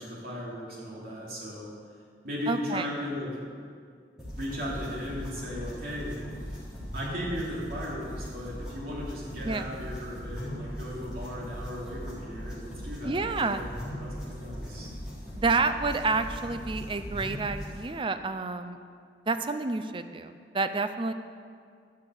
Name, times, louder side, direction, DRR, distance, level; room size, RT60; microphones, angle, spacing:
voice 1, 0.0-1.7 2.2-3.4 4.3-6.2 6.9-13.7 13.9-14.9, equal, 55° right, -5 dB, 3.3 m, -36 dB
voice 2, 2.5-2.8 9.4-9.7 13.0-13.7 15.4-18.8 19.3-21.1, right 3 dB, 30° right, 9 dB, 0.5 m, -29 dB
sound 1, 4.2-17.8, equal, 5° right, 3.7 m, -39 dB
12.0 x 6.5 x 8.0 m, 2.1 s
head